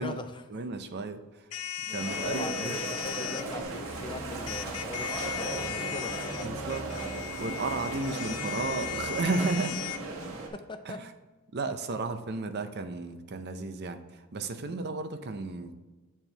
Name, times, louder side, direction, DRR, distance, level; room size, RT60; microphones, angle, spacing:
voice 1, 0.0-0.4 1.9-6.5 6.9-7.1 10.2-10.3 10.5-11.0 14.7-14.8, left 2 dB, 20° left, 8 dB, 0.4 m, -41 dB
voice 2, 0.5-1.5 1.9-2.7 6.4-6.8 7.4-9.8 10.8-11.1 11.5-15.7, right 3 dB, 50° right, 9 dB, 0.6 m, -33 dB
sound 1, 1.5-3.4 4.5-10.0, left 12 dB, 80° left, 0.5 m, -37 dB
sound 2, 2.0-10.5, right 3 dB, 65° right, 1.3 m, -37 dB
sound 3, 3.6-9.1, right 2 dB, 80° right, 1.5 m, -44 dB
8.9 x 4.4 x 3.3 m, 1.3 s
head